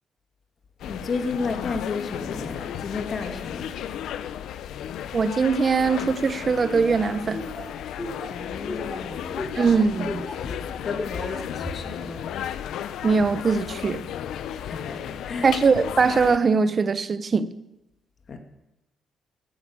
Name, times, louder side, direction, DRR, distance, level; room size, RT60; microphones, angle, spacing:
sound 1, 0.8-16.4, left 10 dB, 80° left, 0.7 m, -34 dB
voice 1, 0.8-3.7 8.0-9.5 10.4-12.3 14.5-15.5 18.3-18.4, left 4 dB, 50° left, 2.1 m, -33 dB
voice 2, 5.1-7.4 9.6-10.3 13.0-14.1 15.4-17.5, right 5 dB, 40° right, 0.9 m, -21 dB
Laughter, 6.6-10.5 11.0-11.4, left 1 dB, 25° left, 6.7 m, -35 dB
13.5 x 9.1 x 8.7 m
cardioid pair, 90°, 0 cm